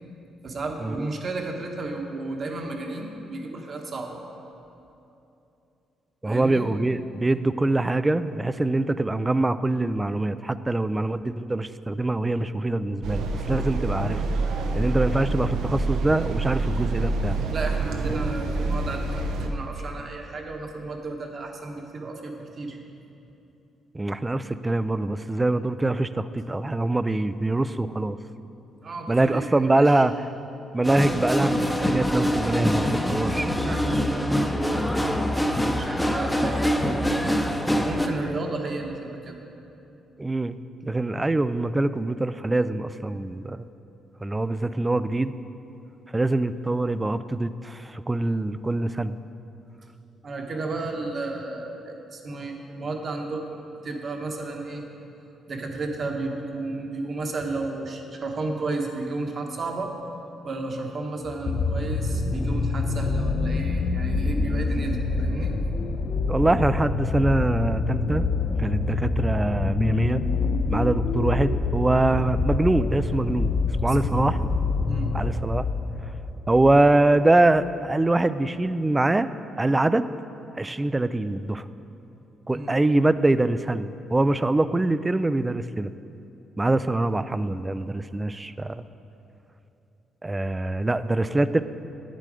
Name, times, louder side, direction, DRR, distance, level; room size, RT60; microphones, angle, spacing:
voice 1, 0.4-4.2 6.2-6.7 17.5-22.8 28.8-30.0 33.6-37.4 37.8-39.4 50.2-54.9 55.5-60.0 60.4-65.5 73.9-74.3 74.9-75.1 82.5-82.7, right 3 dB, 45° right, 2 dB, 1.2 m, -33 dB
voice 2, 6.2-14.2 14.7-17.4 18.1-18.2 23.9-28.2 29.1-30.1 30.7-33.5 40.2-40.6 40.8-43.6 44.2-45.3 46.1-49.2 66.3-68.3 68.6-70.2 70.7-73.5 73.8-74.4 75.1-75.7 76.5-79.3 79.6-80.1 80.6-81.7 82.5-85.9 86.6-88.8 90.2-91.6, right 2 dB, 15° right, 14 dB, 0.3 m, -24 dB
sound 1, 13.0-19.5, right 2 dB, 80° right, 0.7 m, -27 dB
sound 2, 30.8-38.1, equal, 5° left, 0.7 m, -24 dB
sound 3, 61.3-76.8 77.7-77.8, left 3 dB, 45° left, 0.5 m, -26 dB
9.6 x 7.6 x 4.9 m, 2.8 s
cardioid pair, 90°, 0 cm